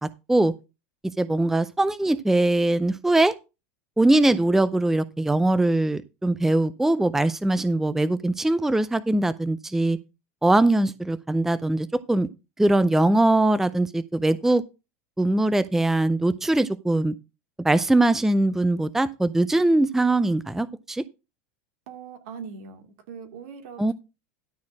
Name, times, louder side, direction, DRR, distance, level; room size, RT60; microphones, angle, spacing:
voice 1, 0.0-0.5 1.2-3.3 4.0-10.0 10.4-12.3 12.6-14.6 15.2-17.1 17.6-21.0 23.8-23.9, right 2 dB, 5° right, 0.5 m, -21 dB
voice 2, 21.9-23.9, right 6 dB, 70° right, 2.5 m, -41 dB
12.5 x 4.2 x 6.0 m
hypercardioid pair, 110°, 8 cm